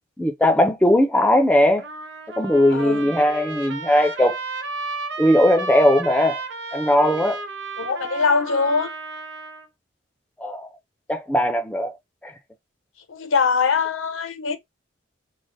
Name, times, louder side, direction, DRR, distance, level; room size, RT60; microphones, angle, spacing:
voice 1, 0.2-1.9 2.4-4.4 5.2-6.4 6.7-7.4 10.4-10.7 11.1-11.9 12.2-12.3, left 1 dB, 5° left, 0.4 m, -18 dB
Trumpet, 1.8-9.7, right 3 dB, 60° right, 0.6 m, -33 dB
voice 2, 2.7-3.1 7.8-8.9 13.1-14.6, left 5 dB, 85° left, 0.8 m, -22 dB
3.2 x 2.0 x 3.9 m
head